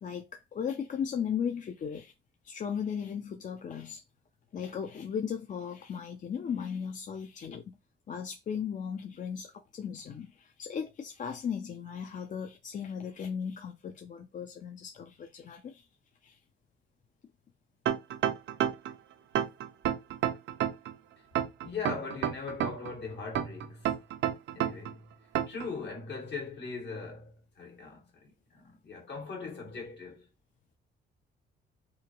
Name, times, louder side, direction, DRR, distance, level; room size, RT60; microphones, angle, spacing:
voice 1, 0.0-2.1 2.4-4.0 4.5-7.8 8.1-15.8 16.2-16.4, left 7 dB, 40° left, 0.4 m, -36 dB
sound 1, 17.9-18.9 19.4-20.9 21.4-22.9 23.4-24.9 25.4-25.7, right 10 dB, 65° right, 0.4 m, -29 dB
voice 2, 21.6-24.0 24.5-25.1 25.5-30.3, left 4 dB, 60° left, 1.6 m, -40 dB
2.8 x 2.5 x 2.8 m
cardioid pair, 90°, 20 cm